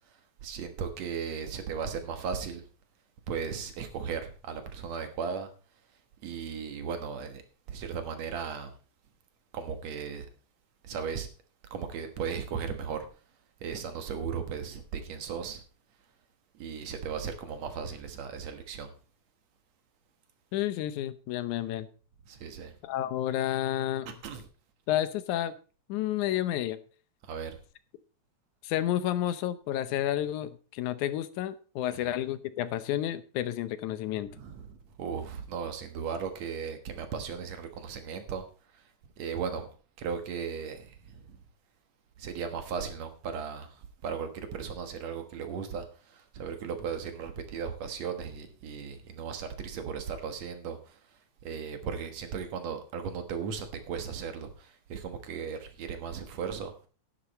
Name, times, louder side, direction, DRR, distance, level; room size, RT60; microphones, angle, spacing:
voice 1, 0.4-2.6 3.3-5.5 6.2-7.4 7.7-8.7 9.5-10.3 10.8-11.3 11.7-13.1 13.6-15.6 16.5-18.9 22.3-22.8 24.2-24.4 27.3-27.6 31.9-32.1 34.3-38.4 39.2-39.7 40.0-41.4 42.2-51.0 51.4-56.7, right 6 dB, 65° right, 2.5 m, -36 dB
voice 2, 20.5-21.9 22.8-24.1 24.9-25.5 25.9-26.8 28.6-34.3, left 12 dB, 90° left, 2.3 m, -30 dB
11.0 x 10.0 x 4.1 m
omnidirectional pair, 3.4 m